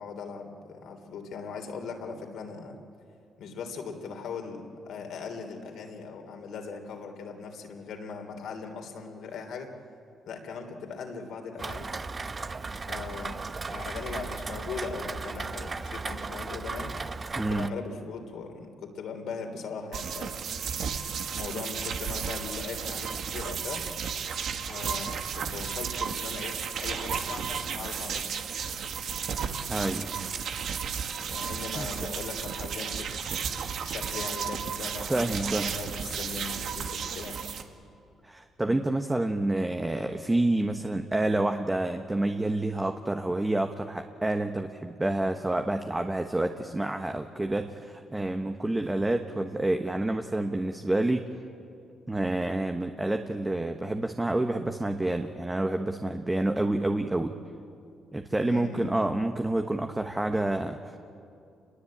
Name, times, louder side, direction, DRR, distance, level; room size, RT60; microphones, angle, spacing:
voice 1, 0.0-2.8 3.4-9.7 10.3-11.9 12.9-16.9 17.4-20.4 21.3-23.9 24.6-28.3 31.3-37.4 58.5-58.9, left 5 dB, 75° left, 4 dB, 3.4 m, -39 dB
Rain, 11.6-17.7, right 4 dB, 30° right, 0.9 m, -36 dB
voice 2, 17.3-17.8 29.7-30.1 31.7-31.9 35.1-35.8 38.2-51.2 52.1-57.3 58.1-61.0, right 2 dB, 15° right, 5 dB, 1.3 m, -28 dB
sound 1, 19.9-37.6, right 7 dB, 65° right, 1.7 m, -33 dB
27.5 x 21.5 x 8.8 m, 2.5 s
cardioid pair, 90°, 0 cm